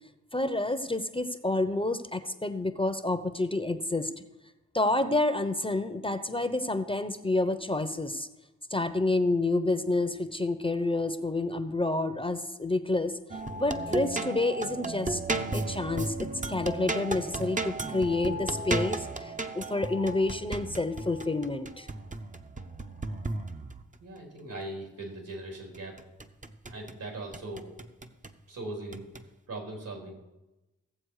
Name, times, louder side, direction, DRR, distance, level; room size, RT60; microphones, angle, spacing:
voice 1, 0.3-4.1 4.7-8.3 8.7-13.2 13.6-15.2 15.5-21.9, left 2 dB, 15° left, 9 dB, 0.9 m, -29 dB
sound 1, 13.3-24.0 25.7-27.0 27.3-28.4 28.9-29.2, right 2 dB, 25° right, 0.9 m, -34 dB
voice 2, 24.0-26.0 26.7-27.7 28.5-29.0 29.5-30.2, right 2 dB, 75° right, 0 dB, 3.9 m, -39 dB
16.0 x 7.4 x 4.9 m, 1.0 s
cardioid pair, 50°, 32 cm